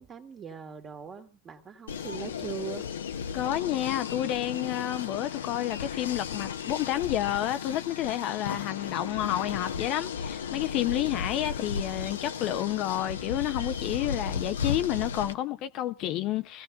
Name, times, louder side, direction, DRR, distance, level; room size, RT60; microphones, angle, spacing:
voice 1, 0.0-2.9, right 6 dB, 30° right, 2.0 m, -40 dB
sound 1, 1.9-15.3, left 6 dB, 80° left, 0.8 m, -35 dB
voice 2, 3.3-16.6, left 13 dB, 50° left, 0.6 m, -30 dB
24.5 x 16.0 x 2.4 m
hypercardioid pair, 95°, 0 cm